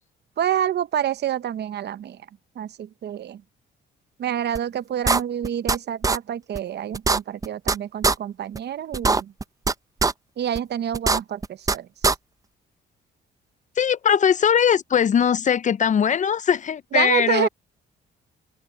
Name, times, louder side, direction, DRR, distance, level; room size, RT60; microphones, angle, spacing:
voice 1, 0.4-2.2 2.6-3.4 4.2-9.3 10.4-11.9 16.9-17.5, right 10 dB, 60° right, 0.8 m, -27 dB
sound 1, 4.5-4.6 5.0-5.8 6.0-6.2 6.5-6.6 6.9-7.7 8.0-8.1 8.5-8.6 8.9-9.7 10.0-10.1 10.5-10.6 10.9-11.7 12.0-12.1, right 3 dB, 15° right, 0.5 m, -20 dB
voice 2, 13.8-17.5, left 8 dB, 40° left, 0.5 m, -20 dB
cardioid pair, 90°, 20 cm